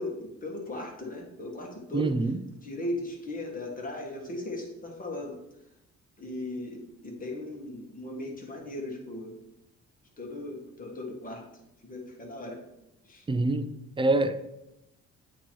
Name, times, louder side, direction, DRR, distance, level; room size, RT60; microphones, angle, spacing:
voice 1, 0.0-2.1 2.6-5.4 6.2-9.4 10.2-11.4 11.8-12.6 13.1-13.2, left 1 dB, 30° left, 0 dB, 1.6 m, -37 dB
voice 2, 1.9-2.4 13.3-13.7 14.0-14.5, right 2 dB, 15° right, 10 dB, 0.5 m, -25 dB
8.4 x 3.0 x 4.5 m, 0.87 s
cardioid pair, 90°, 30 cm